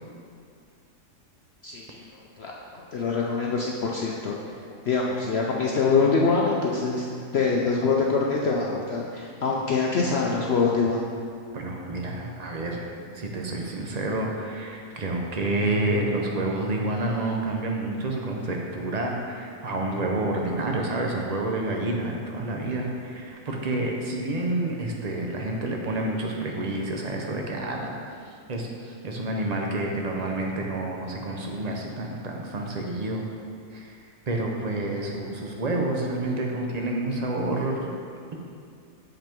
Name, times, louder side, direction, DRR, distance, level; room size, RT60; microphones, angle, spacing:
voice 1, 1.6-2.0 2.4-4.4 4.9-7.1 7.3-11.0, left 4 dB, 65° left, -2 dB, 0.6 m, -24 dB
voice 2, 11.5-12.9 13.1-33.3 33.7-37.9, right 2 dB, 65° right, 0 dB, 0.4 m, -29 dB
7.6 x 5.2 x 4.5 m, 2.3 s
omnidirectional pair, 1.7 m